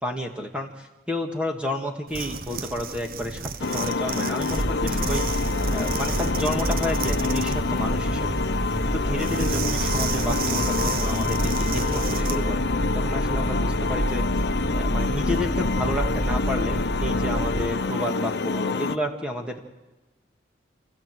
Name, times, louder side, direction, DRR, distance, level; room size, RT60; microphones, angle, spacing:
voice 1, 0.0-8.4 8.8-12.6 12.9-14.3 14.7-19.6, left 1 dB, 5° right, 2 dB, 2.1 m, -31 dB
sound 1, 2.1-12.4, right 5 dB, 50° right, 0.9 m, -33 dB
sound 2, 3.6-19.0, left 4 dB, 70° left, 0.7 m, -27 dB
sound 3, 4.5-17.7, right 1 dB, 25° right, 0.7 m, -28 dB
28.5 x 14.5 x 7.9 m, 1.1 s
head